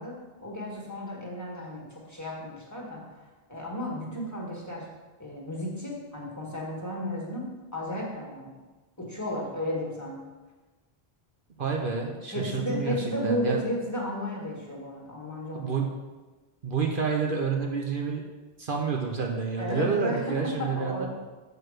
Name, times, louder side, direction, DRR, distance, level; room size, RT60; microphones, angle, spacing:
voice 1, 0.0-3.0 3.5-4.9 5.2-7.5 7.7-8.5 9.0-10.2 12.3-15.7 19.6-21.1, left 1 dB, 15° left, -3 dB, 1.8 m, -33 dB
voice 2, 11.6-12.9 13.2-13.6 15.5-15.9 16.6-18.2 18.6-21.1, right 5 dB, 60° right, 0 dB, 1.0 m, -29 dB
6.6 x 4.7 x 6.5 m, 1.2 s
omnidirectional pair, 1.0 m